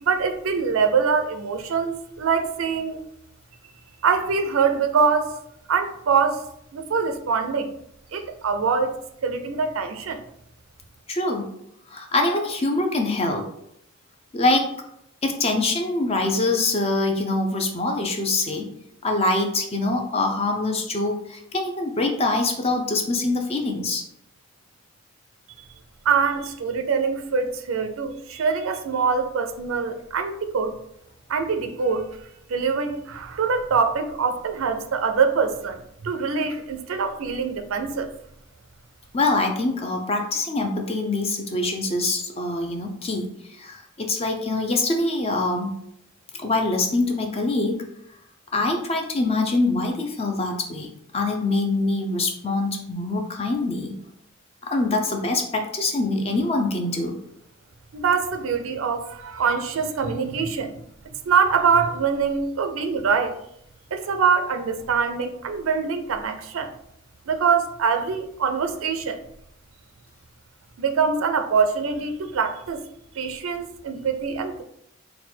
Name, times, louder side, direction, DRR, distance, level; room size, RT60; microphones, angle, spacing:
voice 1, 0.0-3.0 3.6-3.7 4.0-5.4 5.7-7.7 8.1-10.2 26.0-30.7 31.3-32.0 32.5-38.1 57.9-60.7 61.3-63.4 63.9-66.7 67.3-69.2 70.8-72.8 73.1-74.6, right 5 dB, 75° right, 7 dB, 0.4 m, -24 dB
voice 2, 11.1-11.5 11.9-13.5 14.3-14.8 15.2-18.7 19.0-24.0 39.1-45.7 46.4-47.8 48.5-50.9 51.1-53.9 54.6-57.2, left 2 dB, 30° left, 3 dB, 0.6 m, -24 dB
4.1 x 2.2 x 4.3 m, 0.75 s
head